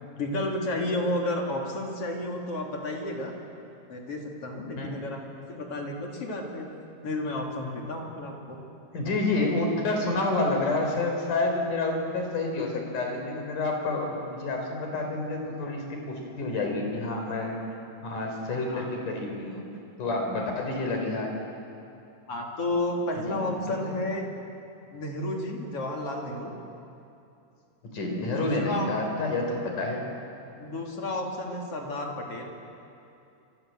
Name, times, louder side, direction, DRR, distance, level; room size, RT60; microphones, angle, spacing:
voice 1, 0.2-3.4 3.9-5.2 5.5-6.7 7.0-8.6 18.7-18.9 22.3-24.3 24.9-26.5 28.2-28.9 30.6-32.4, left 1 dB, 45° left, 0 dB, 3.7 m, -32 dB
voice 2, 8.9-17.6 18.0-19.6 20.0-21.3 23.3-24.0 27.9-30.0, left 2 dB, 75° left, 2 dB, 5.7 m, -29 dB
26.0 x 26.0 x 7.7 m, 2.7 s
omnidirectional pair, 3.7 m